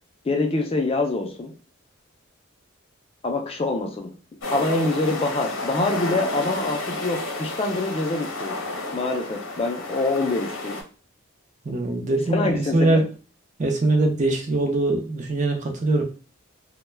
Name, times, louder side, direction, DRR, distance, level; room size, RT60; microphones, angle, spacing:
voice 1, 0.2-1.5 3.2-4.1 4.5-8.6 8.9-10.8 12.3-13.0, left 2 dB, 25° left, 3 dB, 0.3 m, -25 dB
sound 1, 4.4-10.8, left 2 dB, 70° left, 0.8 m, -31 dB
voice 2, 11.6-13.1 13.6-16.0, right 2 dB, 35° right, 3 dB, 0.5 m, -22 dB
2.2 x 2.1 x 3.2 m, 0.35 s
head